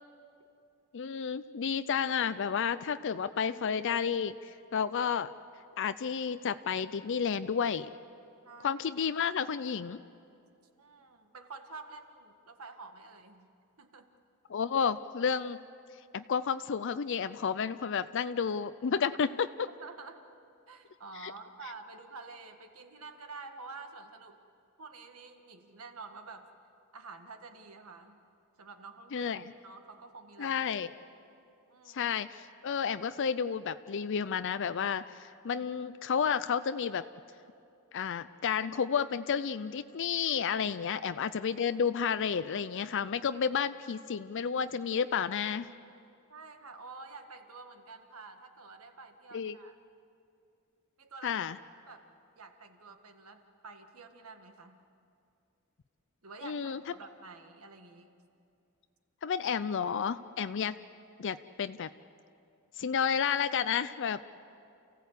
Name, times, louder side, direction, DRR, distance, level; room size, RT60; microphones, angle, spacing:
voice 1, 0.9-4.4 4.7-5.3 5.8-7.9 8.6-10.0 14.5-15.6 16.1-19.7 21.2-21.3 29.1-29.4 30.4-30.9 31.9-37.0 37.9-45.7 49.3-49.6 51.2-51.6 56.4-56.8 59.2-60.7 61.2-61.9 62.8-64.2, left 7 dB, 55° left, 12 dB, 0.5 m, -31 dB
voice 2, 8.4-8.8 10.8-13.5 13.8-14.1 19.8-20.2 20.7-24.4 24.8-26.5 26.9-28.2 28.6-29.3 29.6-30.5 31.7-32.1 46.3-49.7 51.0-51.4 51.9-52.1 52.3-54.8 56.2-58.2, right 4 dB, 80° right, 6 dB, 1.7 m, -49 dB
29.0 x 16.0 x 8.2 m, 2.5 s
head